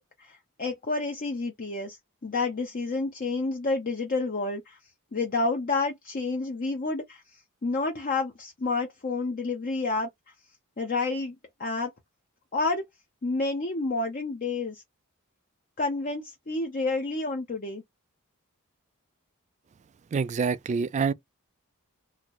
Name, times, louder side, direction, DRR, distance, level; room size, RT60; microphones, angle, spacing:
voice 1, 0.0-2.0 2.2-4.8 5.1-10.1 10.8-11.9 12.5-12.8 13.2-14.8 15.8-17.8, left 3 dB, 40° left, 0.7 m, -29 dB
voice 2, 20.1-21.1, right 5 dB, 35° right, 0.3 m, -26 dB
4.0 x 2.0 x 2.9 m
head